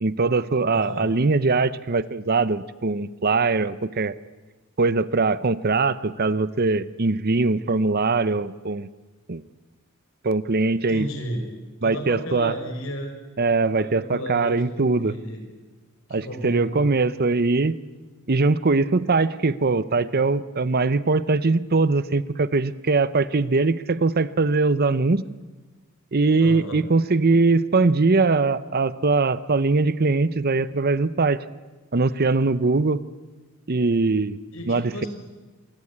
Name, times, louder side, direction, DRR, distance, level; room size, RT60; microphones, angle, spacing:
voice 1, 0.0-4.1 4.8-8.9 9.3-9.4 10.2-11.1 11.8-12.5 13.4-15.1 16.1-17.8 18.3-25.2 26.1-31.4 31.9-33.0 33.7-34.4 34.7-35.1, right 3 dB, 45° right, 15 dB, 0.8 m, -21 dB
voice 2, 0.7-1.1 10.9-11.5 11.8-13.1 13.8-15.4 16.1-16.9 26.4-26.8 34.5-35.1, equal, 70° left, 5 dB, 5.8 m, -33 dB
27.5 x 23.5 x 8.7 m, 1.2 s
head